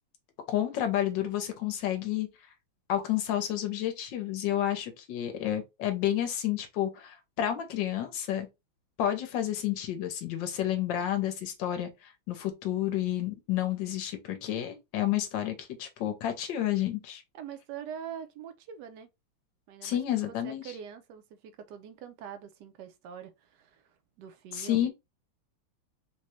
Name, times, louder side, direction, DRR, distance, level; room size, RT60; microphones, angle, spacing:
voice 1, 0.5-2.3 2.9-8.5 9.0-17.2 19.8-20.6 24.5-24.9, left 11 dB, 70° left, 1.3 m, -30 dB
voice 2, 17.3-19.1 19.7-24.9, right 8 dB, 70° right, 1.0 m, -44 dB
4.0 x 2.2 x 2.9 m
omnidirectional pair, 2.4 m